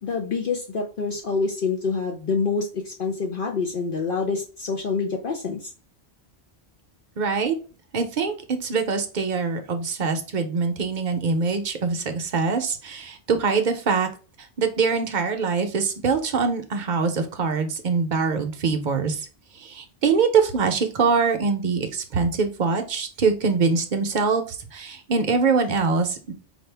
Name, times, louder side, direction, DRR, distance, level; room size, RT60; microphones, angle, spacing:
voice 1, 0.0-5.7, left 4 dB, 60° left, 1 dB, 0.8 m, -26 dB
voice 2, 7.2-7.5 7.9-14.1 14.6-19.2 19.6-24.4 24.7-26.3, right 5 dB, 50° right, 6 dB, 0.8 m, -23 dB
4.4 x 2.3 x 3.3 m, 0.37 s
omnidirectional pair, 1.1 m